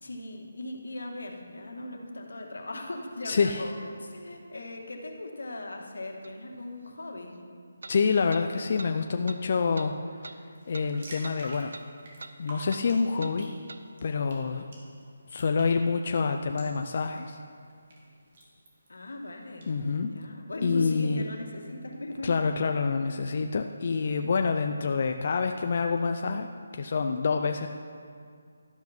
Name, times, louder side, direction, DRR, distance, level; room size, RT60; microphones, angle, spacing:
voice 1, 0.0-7.4 18.9-19.7 20.0-22.6, left 2 dB, 85° left, 2 dB, 2.0 m, -39 dB
voice 2, 3.3-3.6 7.9-9.9 10.2-11.7 12.4-13.5 14.0-14.6 15.3-17.4 19.7-20.1 20.6-21.2 22.2-26.5 26.7-27.7, left 5 dB, 40° left, 5 dB, 0.5 m, -27 dB
sound 1, 6.2-6.3 7.8-8.0 8.3-8.5 8.8-8.9 9.3-9.4 9.8-9.9 10.2-10.4 10.7-10.9 11.2-11.4 11.7-11.9 12.2-12.4 12.7-12.9 13.2-13.4 13.7-13.8, right 3 dB, 65° right, 0.7 m, -43 dB
sound 2, 10.5-19.7, right 1 dB, 40° right, 2.8 m, -50 dB
12.0 x 11.5 x 4.4 m, 2.2 s
hypercardioid pair, 170°, 0 cm